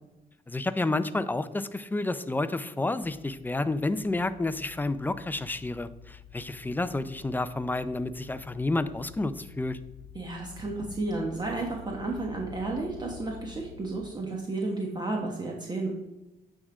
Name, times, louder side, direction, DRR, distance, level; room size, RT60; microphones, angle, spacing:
voice 1, 0.5-9.8, left 2 dB, 10° left, 13 dB, 0.4 m, -30 dB
sound 1, 3.0-14.0, left 9 dB, 45° left, 0.8 m, -49 dB
voice 2, 10.1-15.9, right 2 dB, 25° right, 0 dB, 1.1 m, -32 dB
8.5 x 3.7 x 4.8 m, 1.0 s
cardioid pair, 90°, 16 cm